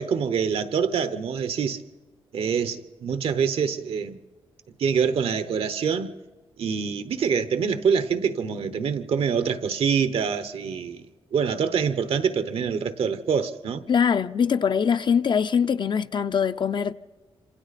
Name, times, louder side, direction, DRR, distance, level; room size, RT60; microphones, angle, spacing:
voice 1, 0.0-1.8 2.3-4.2 4.8-6.1 6.6-11.0 11.3-13.8, right 6 dB, 75° right, 1.0 m, -25 dB
voice 2, 13.9-16.9, left 7 dB, 50° left, 0.6 m, -22 dB
26.5 x 26.0 x 4.2 m
cardioid pair, 75°, 10 cm